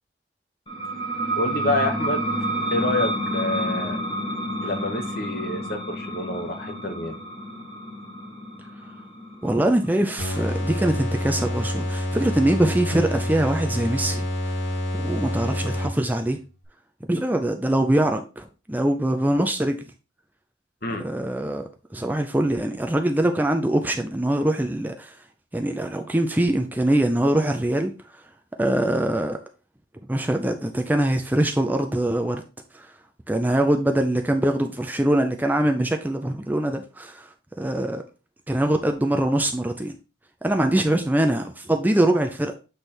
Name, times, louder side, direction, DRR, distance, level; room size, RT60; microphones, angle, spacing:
sound 1, 0.7-11.9, right 1 dB, 25° left, 1.3 m, -30 dB
voice 1, 1.3-2.3 2.7-4.0 4.6-7.2 20.8-21.1, left 2 dB, 50° left, 1.1 m, -28 dB
voice 2, 9.4-14.3 15.0-16.4 17.0-19.8 21.0-21.6 21.9-25.1 25.5-27.9 28.6-29.4 30.1-32.4 32.7-32.9 33.3-37.3 37.6-38.0 38.5-39.9 40.4-42.5, right 1 dB, 10° right, 0.4 m, -23 dB
sound 2, 10.2-16.3, left 1 dB, 65° left, 2.4 m, -28 dB
8.0 x 3.4 x 4.3 m
head